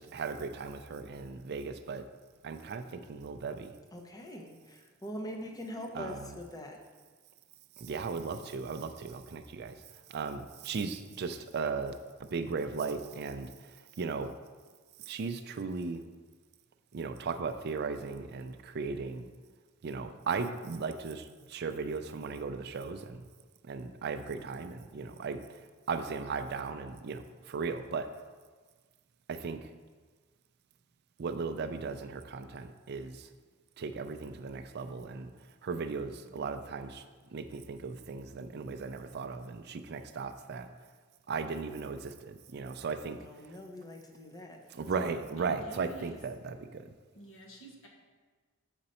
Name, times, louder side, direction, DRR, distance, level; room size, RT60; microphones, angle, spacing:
voice 1, 0.0-2.1 2.4-3.7 5.9-6.4 7.8-9.8 10.1-14.3 15.0-16.0 16.9-19.3 19.8-23.2 23.6-25.6 25.9-28.1 29.3-29.7 31.2-33.3 33.8-35.3 35.6-37.1 37.3-40.7 41.3-43.2 44.7-46.9, right 4 dB, 50° right, 9 dB, 0.4 m, -37 dB
voice 2, 3.9-6.8 43.2-45.2, left 1 dB, 20° left, 2 dB, 0.7 m, -43 dB
voice 3, 5.2-6.2 45.4-46.2 47.1-47.9, right 2 dB, 70° left, -1 dB, 1.4 m, -51 dB
7.9 x 5.2 x 4.2 m, 1.4 s
head